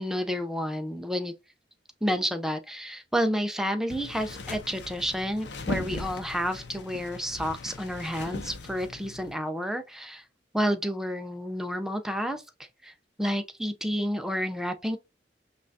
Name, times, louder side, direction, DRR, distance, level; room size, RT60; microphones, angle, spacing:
voice 1, 0.0-1.3 2.0-10.2 10.5-12.4 12.8-12.9 13.2-15.0, equal, 5° right, 0.4 m, -30 dB
sound 1, 3.9-9.3, left 3 dB, 70° left, 0.7 m, -39 dB
5.4 x 2.4 x 2.6 m
head